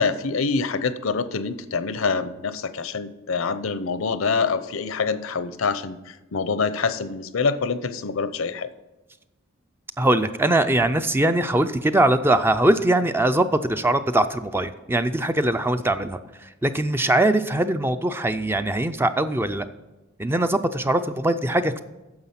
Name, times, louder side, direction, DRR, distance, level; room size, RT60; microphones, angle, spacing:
voice 1, 0.0-8.7, left 5 dB, 80° left, 13 dB, 0.7 m, -25 dB
voice 2, 10.0-19.7 20.2-21.8, right 1 dB, 10° right, 10 dB, 0.4 m, -21 dB
9.6 x 6.9 x 5.7 m, 1.1 s
head